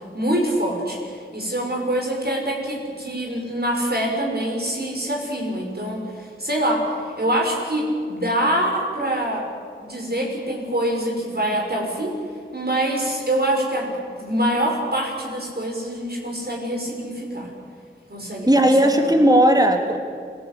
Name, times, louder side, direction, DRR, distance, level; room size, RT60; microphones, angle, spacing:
voice 1, 0.1-6.9 7.2-9.4 9.8-12.2 12.5-17.5 18.1-19.0, right 1 dB, 50° right, 0 dB, 6.7 m, -25 dB
voice 2, 18.5-20.0, right 1 dB, 20° right, 3 dB, 3.0 m, -16 dB
25.0 x 18.5 x 8.8 m, 2.2 s
wide cardioid pair, 40°, 21 cm